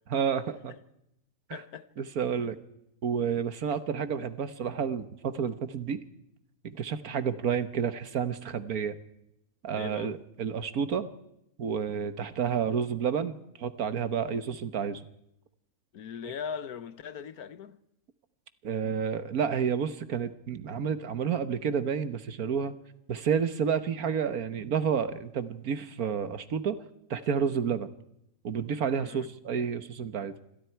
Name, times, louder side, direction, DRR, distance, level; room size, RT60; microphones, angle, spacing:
voice 1, 0.1-0.7 1.5-1.6 2.0-2.6 3.0-6.0 6.6-9.0 9.6-11.1 11.6-15.0 18.6-22.7 23.1-26.8 27.1-27.9 28.4-30.3, right 7 dB, 75° right, 1.7 m, -30 dB
voice 2, 1.5-1.9 9.7-10.1 15.9-17.8 29.0-29.3, left 7 dB, 80° left, 1.5 m, -39 dB
27.5 x 25.0 x 4.6 m
omnidirectional pair, 1.6 m